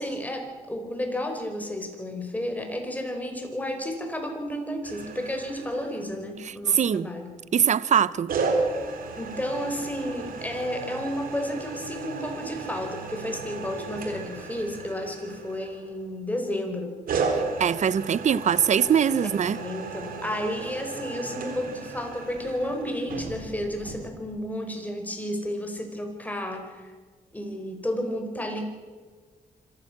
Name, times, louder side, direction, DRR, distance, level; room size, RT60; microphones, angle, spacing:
voice 1, 0.0-7.3 9.1-16.9 19.5-26.9 27.3-28.6, left 1 dB, 10° left, 5.1 m, -32 dB
sound 1, 4.8-6.4 8.3-16.1 17.1-24.1, right 4 dB, 80° right, 3.7 m, -34 dB
voice 2, 6.4-7.1 7.5-8.3 17.3-19.6, right 8 dB, 55° right, 0.8 m, -22 dB
25.5 x 14.5 x 7.5 m
cardioid pair, 85°, 15 cm